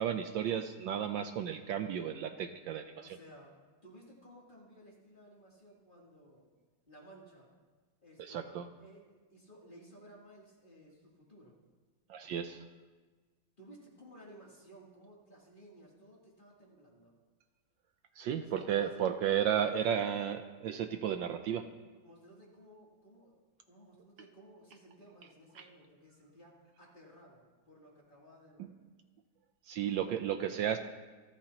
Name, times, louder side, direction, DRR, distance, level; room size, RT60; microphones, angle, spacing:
voice 1, 0.0-3.2 8.2-8.7 12.1-12.7 18.1-21.7 25.6-25.7 28.6-28.7 29.6-30.8, right 9 dB, 75° right, 7 dB, 1.3 m, -33 dB
voice 2, 3.0-6.5 6.9-7.5 8.0-11.6 13.6-17.1 18.4-19.1 19.4-20.3 21.8-23.4 23.7-28.7, equal, 25° left, -4 dB, 3.1 m, -57 dB
27.5 x 12.0 x 2.9 m, 1.3 s
omnidirectional pair, 2.2 m